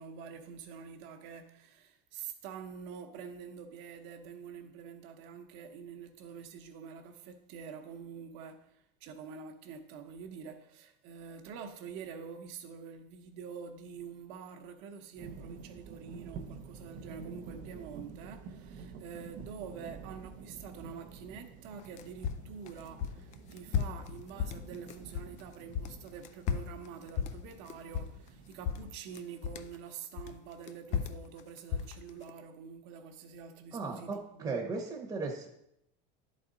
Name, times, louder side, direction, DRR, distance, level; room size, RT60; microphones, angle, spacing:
voice 1, 0.0-34.5, right 6 dB, 55° right, 6 dB, 1.0 m, -46 dB
sound 1, 15.2-28.9, right 5 dB, 40° right, 0.6 m, -49 dB
sound 2, 21.8-25.4 25.7-28.4 28.6-29.7 30.2-32.3, left 7 dB, 35° left, 0.4 m, -35 dB
voice 2, 33.7-35.5, right 4 dB, 15° right, -1 dB, 1.0 m, -36 dB
10.5 x 4.2 x 3.8 m, 0.78 s
supercardioid pair, 145°, 21 cm